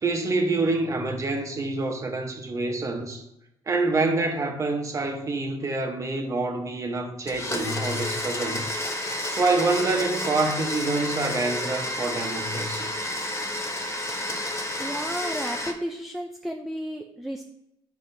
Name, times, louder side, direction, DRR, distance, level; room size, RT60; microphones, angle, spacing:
voice 1, 0.0-3.2 3.7-8.7 9.3-12.9, right 3 dB, 30° right, 1.1 m, -26 dB
Domestic sounds home sounds, 7.3-15.7, left 1 dB, 25° left, 0.9 m, -30 dB
voice 2, 14.8-17.4, equal, ahead, 0.5 m, -33 dB
9.6 x 4.6 x 2.7 m
cardioid pair, 120°, 11 cm